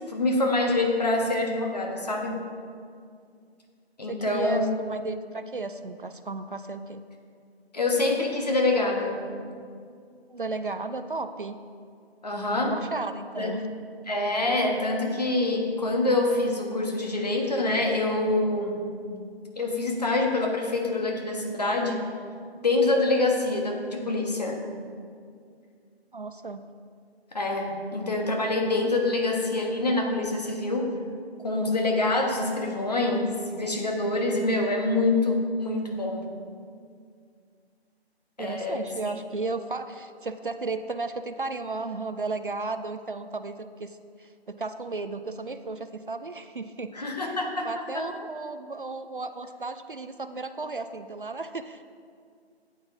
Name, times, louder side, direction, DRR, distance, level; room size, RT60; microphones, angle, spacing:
voice 1, 0.1-2.4 4.0-4.7 7.7-9.2 12.2-12.8 13.4-13.6 14.1-18.8 19.6-22.0 22.6-24.6 27.3-30.9 31.4-36.3 38.4-38.9 46.9-48.1, left 2 dB, 40° left, 1 dB, 1.2 m, -26 dB
voice 2, 4.1-7.0 10.3-11.6 12.3-13.6 26.1-26.7 38.4-47.4 47.6-51.8, right 3 dB, 55° right, 10 dB, 0.4 m, -34 dB
13.0 x 9.0 x 2.7 m, 2.2 s
figure-of-eight pair, 170°, 32 cm